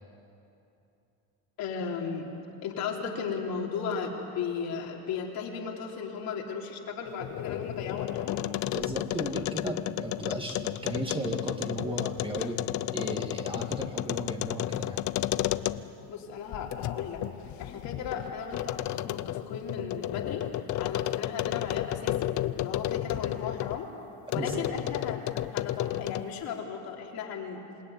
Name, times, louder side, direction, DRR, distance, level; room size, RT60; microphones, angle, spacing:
voice 1, 1.6-2.3 2.6-8.4 16.1-17.2 17.6-20.4 20.8-23.9 24.3-27.6, left 6 dB, 60° left, -1 dB, 3.6 m, -36 dB
sound 1, 7.1-16.1 16.5-23.8 24.3-26.4, left 14 dB, 45° left, 0.6 m, -32 dB
voice 2, 8.7-12.7 12.9-15.0 24.4-24.6, right 1 dB, 15° right, 2 dB, 2.0 m, -35 dB
27.5 x 17.0 x 9.6 m, 2.8 s
cardioid pair, 145°, 40 cm